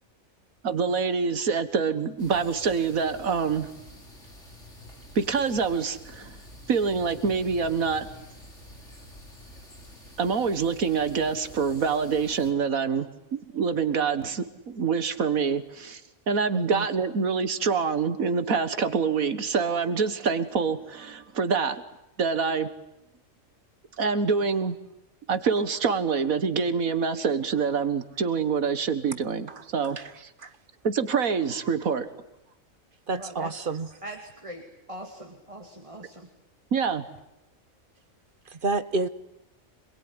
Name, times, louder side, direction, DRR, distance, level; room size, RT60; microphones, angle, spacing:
voice 1, 0.6-3.7 5.2-6.4 6.7-8.1 10.2-16.0 16.3-21.8 22.2-22.7 24.0-24.8 25.3-30.3 30.8-32.1 36.7-37.1, right 5 dB, 80° right, 11 dB, 1.9 m, -26 dB
sound 1, 2.2-12.5, equal, 55° left, 5.3 m, -48 dB
voice 2, 16.5-16.8 30.0-30.1 30.4-30.5 33.1-33.9 38.5-39.1, right 3 dB, 40° right, 13 dB, 1.4 m, -29 dB
voice 3, 33.2-33.7 34.0-36.3, right 1 dB, 25° right, 2 dB, 3.0 m, -41 dB
27.0 x 21.5 x 9.8 m, 0.90 s
omnidirectional pair, 1.4 m